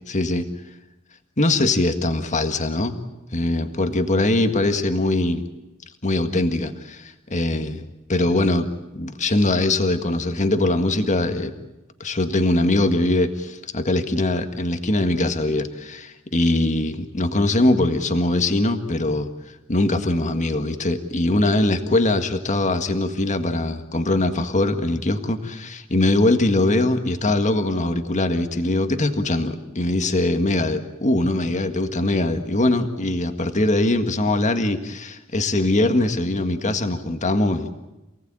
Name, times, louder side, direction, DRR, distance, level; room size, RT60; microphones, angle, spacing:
voice 1, 0.1-0.5 1.4-3.0 3.3-5.4 6.0-7.8 8.1-11.5 12.0-19.3 19.7-37.7, left 2 dB, 35° left, 7 dB, 1.7 m, -22 dB
28.0 x 18.5 x 8.9 m, 0.99 s
head